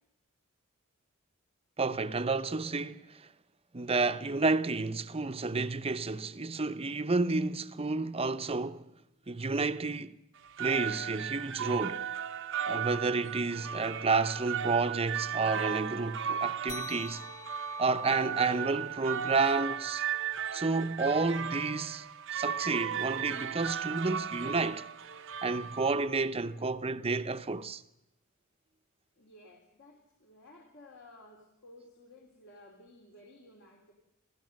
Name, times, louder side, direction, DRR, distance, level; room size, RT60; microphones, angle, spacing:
voice 1, 1.8-3.3 3.7-8.9 9.3-10.2 10.6-12.0 12.6-17.2 17.8-20.0 20.5-24.8 25.4-27.8, right 3 dB, 30° right, 0.7 m, -30 dB
sound 1, 10.4-26.2, right 8 dB, 60° right, 0.7 m, -36 dB
sound 2, 16.7-21.6, left 4 dB, 15° left, 1.2 m, -50 dB
voice 2, 29.2-33.9, left 1 dB, 60° left, 2.9 m, -55 dB
27.5 x 16.0 x 6.5 m
head